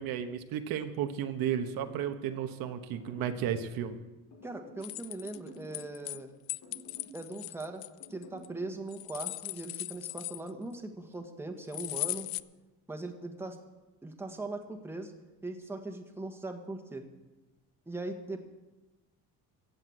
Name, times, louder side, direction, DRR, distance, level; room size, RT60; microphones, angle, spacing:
voice 1, 0.0-4.0, right 9 dB, 75° right, 7 dB, 1.2 m, -33 dB
sound 1, 1.5-2.5 2.9-3.5 4.3-4.9 5.2-6.3 6.6-7.2 8.0-8.5, equal, 60° left, 6.5 m, -51 dB
voice 2, 4.4-6.3 7.1-7.8 8.1-12.3 12.9-13.6 14.0-15.1 15.4-17.1 17.9-18.4, right 2 dB, 5° right, 5 dB, 1.4 m, -40 dB
sound 2, 4.8-6.2 6.5-8.5 8.9-10.7 11.7-12.4, left 20 dB, 80° left, 0.5 m, -38 dB
15.5 x 7.9 x 7.8 m, 1.1 s
cardioid pair, 135°, 36 cm